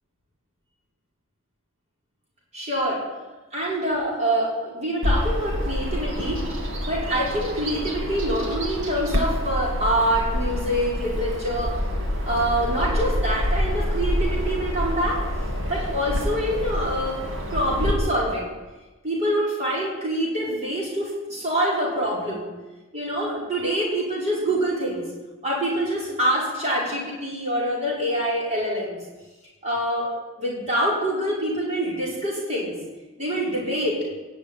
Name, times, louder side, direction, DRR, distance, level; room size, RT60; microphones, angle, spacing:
voice 1, 2.5-3.0 3.5-6.5 6.8-11.8 12.2-15.2 15.7-17.2 17.5-18.5 19.0-22.5 22.9-25.0 25.4-29.0 29.6-30.1 30.4-32.8 33.2-34.0, right 1 dB, 30° right, -5 dB, 5.6 m, -25 dB
Bird vocalization bird call bird song, 5.0-17.9, left 1 dB, 70° right, 2.6 m, -27 dB
17.0 x 7.3 x 9.4 m, 1.2 s
head